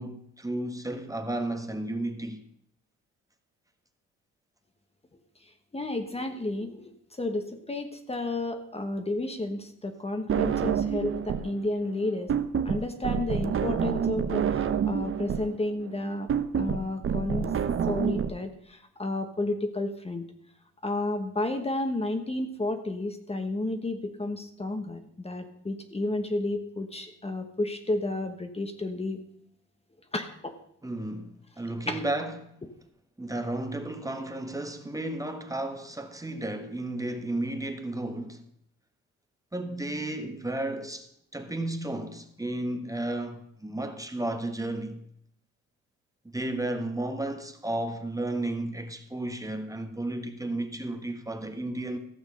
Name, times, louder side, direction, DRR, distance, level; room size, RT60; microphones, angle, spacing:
voice 1, 0.0-2.4 30.8-32.5 33.2-38.4 39.5-45.0 46.3-52.0, right 1 dB, 10° right, 1.4 m, -33 dB
voice 2, 5.7-6.9 7.2-12.3 12.6-16.3 16.6-17.5 17.9-20.2 20.8-29.2 30.1-30.5 31.9-32.0, left 2 dB, 20° left, 1.2 m, -31 dB
sound 1, 10.3-11.6 11.8-18.3, right 7 dB, 45° right, 0.9 m, -28 dB
14.5 x 6.5 x 6.4 m
cardioid pair, 90°, 30 cm